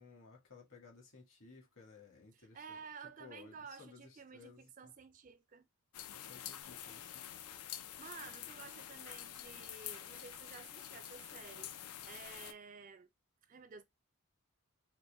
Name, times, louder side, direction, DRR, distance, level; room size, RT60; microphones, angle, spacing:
voice 1, 0.0-2.8 3.2-4.9 6.2-7.2, left 4 dB, 65° left, 1.7 m, -58 dB
voice 2, 2.3-5.7 8.0-11.7 12.1-13.1 13.5-13.8, right 5 dB, 35° right, 0.3 m, -53 dB
sound 1, 5.9-12.5, left 11 dB, 90° left, 0.5 m, -48 dB
4.2 x 2.2 x 3.4 m
head